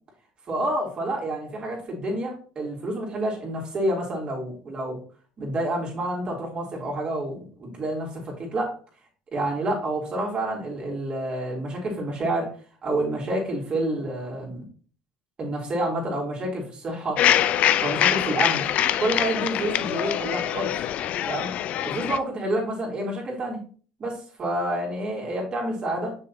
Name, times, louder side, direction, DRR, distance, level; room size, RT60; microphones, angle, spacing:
voice 1, 0.5-5.0 5.4-8.8 9.3-12.5 12.8-14.6 15.4-17.2 17.8-18.7 19.0-20.7 21.3-21.5 21.8-23.6 24.0-26.2, right 1 dB, 40° right, -1 dB, 3.2 m, -28 dB
sound 1, 17.2-22.2, left 11 dB, 60° left, 0.4 m, -24 dB
6.5 x 6.1 x 2.9 m, 0.41 s
supercardioid pair, 80°, 3 cm